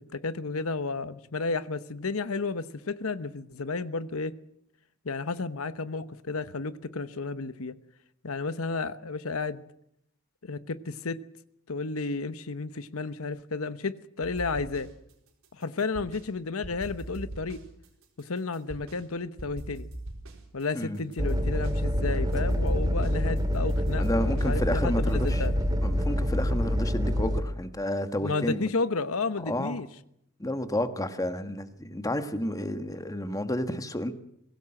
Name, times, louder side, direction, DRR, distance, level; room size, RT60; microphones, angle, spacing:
voice 1, 0.1-4.3 5.0-7.7 8.2-9.6 10.4-11.2 11.7-14.9 15.5-17.6 18.2-19.9 20.5-25.5 28.2-29.9, left 3 dB, 70° left, 13 dB, 1.0 m, -32 dB
sound 1, 14.2-15.1 15.4-16.3 16.6-19.0 19.4-21.8 22.1-25.8, right 1 dB, 70° right, 4.2 m, -42 dB
sound 2, 21.2-27.4, equal, 20° right, 2.2 m, -26 dB
voice 2, 24.0-25.5 25.8-28.7 29.4-29.8 30.4-34.1, left 1 dB, 15° left, 9 dB, 1.4 m, -31 dB
22.5 x 17.0 x 7.7 m, 0.75 s
head